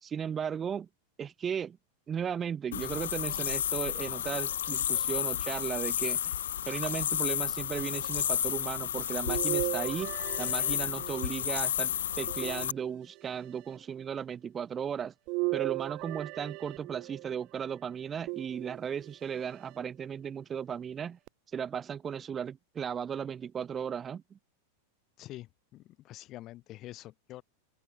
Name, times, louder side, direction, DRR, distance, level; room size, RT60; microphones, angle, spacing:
voice 1, 0.0-0.9 1.2-1.8 2.1-6.4 6.7-15.1 15.5-21.2 21.5-24.4, right 7 dB, 20° right, 2.6 m, -36 dB
sound 1, 2.7-12.7, left 10 dB, 65° left, 0.5 m, -32 dB
sound 2, 9.3-11.5 12.3-13.3 15.3-17.3 18.3-19.1 19.8-19.9 21.3-21.4, right 27 dB, 40° right, 3.4 m, -36 dB
voice 2, 25.2-27.4, left 16 dB, 35° left, 7.6 m, -46 dB
open air
figure-of-eight pair, 90°, 0 cm